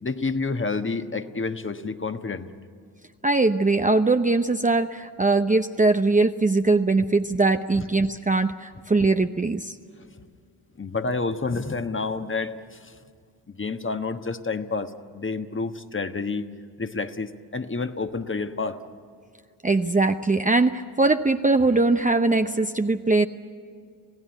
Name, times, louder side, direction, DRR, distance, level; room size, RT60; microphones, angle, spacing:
voice 1, 0.0-2.5 7.7-7.8 10.8-12.9 13.5-16.5 16.8-18.8, left 4 dB, 25° left, 8 dB, 1.3 m, -29 dB
voice 2, 3.2-9.8 19.6-23.3, right 3 dB, 15° right, 7 dB, 0.8 m, -21 dB
26.5 x 17.0 x 9.8 m, 2.2 s
hypercardioid pair, 45°, 48 cm